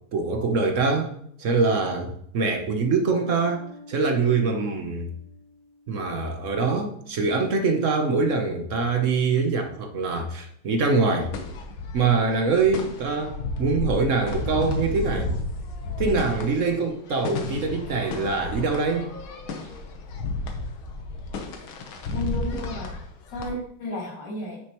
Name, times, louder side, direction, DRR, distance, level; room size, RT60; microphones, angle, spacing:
voice 1, 0.1-1.1 1.4-5.1 5.9-11.3 11.9-15.3 16.0-19.1, right 4 dB, 55° right, 5 dB, 0.9 m, -24 dB
Bass guitar, 3.1-6.6, left 3 dB, 10° left, 3.4 m, -48 dB
sound 1, 11.2-23.5, left 2 dB, 75° left, 1.9 m, -32 dB
voice 2, 22.1-23.0 23.3-24.6, left 2 dB, 55° left, -2 dB, 2.7 m, -32 dB
9.5 x 6.5 x 3.0 m, 0.68 s
omnidirectional pair, 2.3 m